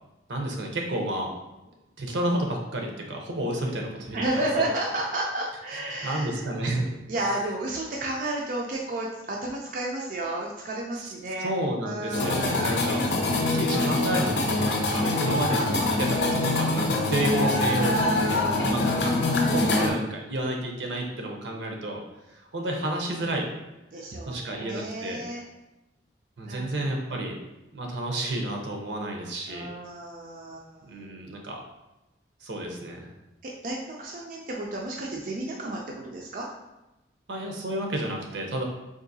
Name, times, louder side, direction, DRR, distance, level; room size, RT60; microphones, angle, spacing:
voice 1, 0.3-1.3 2.0-4.2 6.0-6.9 10.9-11.1 11.4-15.6 16.0-18.3 18.6-22.0 22.3-23.5 24.3-25.2 26.4-27.3 27.7-29.7 30.8-31.6 32.4-33.1 37.3-38.6, right 1 dB, 80° right, 1 dB, 0.7 m, -31 dB
voice 2, 4.1-6.4 7.1-11.5 11.8-12.9 17.8-18.7 23.9-25.4 26.5-27.1 29.5-31.0 33.4-36.5, right 1 dB, 45° right, -2 dB, 0.4 m, -32 dB
sound 1, 12.1-19.9, left 2 dB, 70° left, 0.5 m, -24 dB
3.7 x 2.6 x 2.6 m, 0.98 s
head